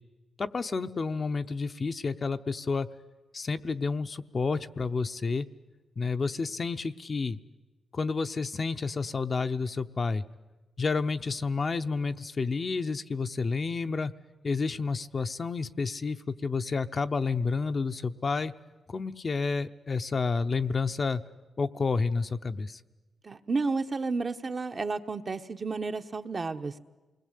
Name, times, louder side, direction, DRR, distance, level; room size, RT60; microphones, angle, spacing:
voice 1, 0.4-2.9 3.3-5.5 6.0-7.4 7.9-10.2 10.8-14.1 14.4-18.5 18.9-21.2 21.6-22.8, left 4 dB, 45° left, 9 dB, 0.8 m, -30 dB
voice 2, 23.2-26.8, right 4 dB, 40° right, 7 dB, 1.2 m, -31 dB
28.0 x 21.0 x 8.3 m, 1.2 s
cardioid pair, 90°, 0 cm